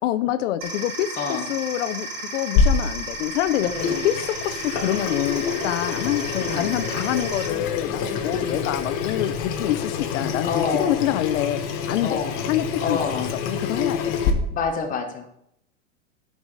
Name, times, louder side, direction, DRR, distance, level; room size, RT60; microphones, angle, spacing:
voice 1, 0.0-3.7 4.0-11.6 11.9-12.2 12.5-13.1 13.5-14.1, left 13 dB, 80° left, 12 dB, 0.6 m, -26 dB
sound 1, 0.6-7.5, right 1 dB, 65° right, 2.6 m, -34 dB
Water tap faucet / Sink (filling or washing), 2.6-14.3, left 6 dB, 45° left, 1.1 m, -27 dB
voice 2, 3.6-4.1 6.4-6.7 8.3-8.7 10.4-11.1 12.0-12.3 12.8-13.3 14.5-15.3, left 5 dB, 20° left, 3 dB, 1.1 m, -28 dB
11.0 x 4.8 x 4.0 m, 0.75 s
supercardioid pair, 155°, 37 cm